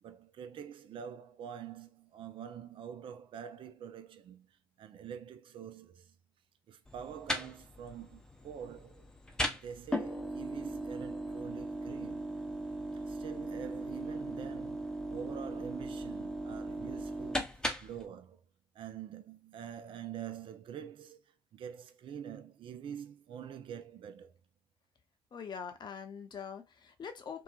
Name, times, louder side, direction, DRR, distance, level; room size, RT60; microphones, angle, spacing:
voice 1, 0.0-4.5 4.8-6.1 6.7-9.0 9.5-12.3 13.0-18.4 18.7-21.2 21.5-24.3, right 8 dB, 55° right, 0.5 m, -46 dB
sound 1, 6.9-18.1, equal, 5° left, 0.6 m, -38 dB
voice 2, 25.3-27.4, left 6 dB, 45° left, 0.7 m, -43 dB
2.8 x 2.3 x 2.3 m
hypercardioid pair, 50°, 11 cm